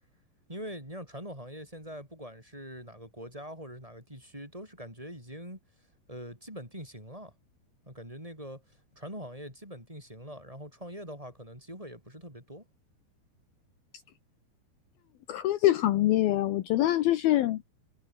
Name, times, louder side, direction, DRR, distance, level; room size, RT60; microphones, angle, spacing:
voice 1, 0.5-5.6 6.1-7.3 7.9-12.6, equal, 10° right, 7.9 m, -43 dB
voice 2, 15.3-17.7, left 14 dB, 70° left, 2.8 m, -24 dB
omnidirectional pair, 4.7 m